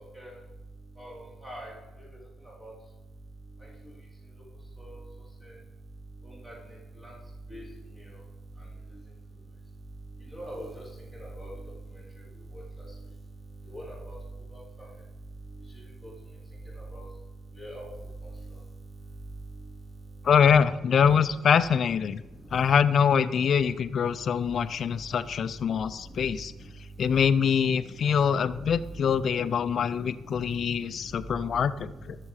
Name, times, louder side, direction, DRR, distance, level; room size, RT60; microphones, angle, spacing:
voice 1, 1.0-1.7 2.6-2.7 6.4-6.5 7.5-7.6 10.3-10.7 11.4-11.5 13.7-14.1 16.9-17.0 17.6-17.8, right 1 dB, 20° right, -4 dB, 3.9 m, -40 dB
voice 2, 20.2-22.2 22.5-26.5 27.0-32.2, left 7 dB, 55° left, 14 dB, 0.6 m, -24 dB
13.5 x 6.7 x 4.9 m, 1.0 s
cardioid pair, 90°, 0 cm